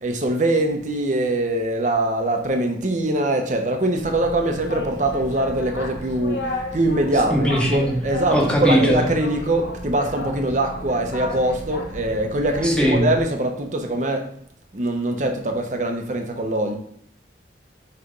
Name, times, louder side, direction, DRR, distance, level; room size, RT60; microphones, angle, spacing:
voice 1, 0.0-14.3 14.7-16.8, right 1 dB, 45° right, 4 dB, 0.9 m, -23 dB
Boat Water vehicle, 4.0-13.2, left 1 dB, 85° left, 1.3 m, -33 dB
voice 2, 7.3-8.0 8.3-9.1 12.6-13.0, equal, 5° left, -1 dB, 1.2 m, -19 dB
6.8 x 3.3 x 5.2 m, 0.64 s
head